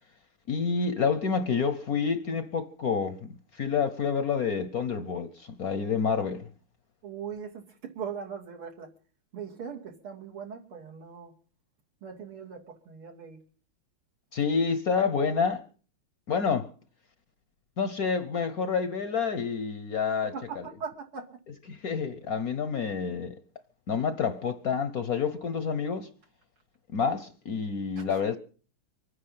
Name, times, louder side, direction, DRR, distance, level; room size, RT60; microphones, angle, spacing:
voice 1, 0.5-6.4 14.3-15.6 16.3-16.7 17.8-20.3 21.7-23.4 23.9-26.1 26.9-28.4, left 5 dB, 55° left, 1.1 m, -28 dB
voice 2, 7.0-8.9 9.3-11.3 12.0-13.4 20.3-21.3 28.0-28.2, right 6 dB, 80° right, 3.4 m, -40 dB
24.5 x 9.8 x 5.7 m
omnidirectional pair, 2.3 m